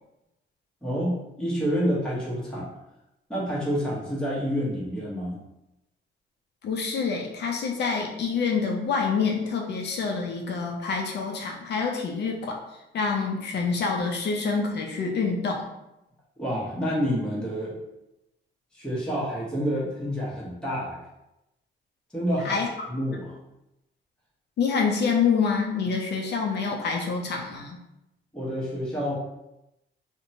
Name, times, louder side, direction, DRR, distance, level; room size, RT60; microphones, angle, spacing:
voice 1, 0.8-2.7 3.3-5.4 16.4-17.8 18.7-21.0 22.1-22.6 22.9-23.4 28.3-29.1, equal, 5° left, -7 dB, 0.9 m, -28 dB
voice 2, 6.6-12.6 12.9-15.6 22.4-22.7 24.6-27.8, left 5 dB, 60° left, 1 dB, 0.5 m, -26 dB
2.8 x 2.1 x 2.6 m, 0.90 s
cardioid pair, 90°, 20 cm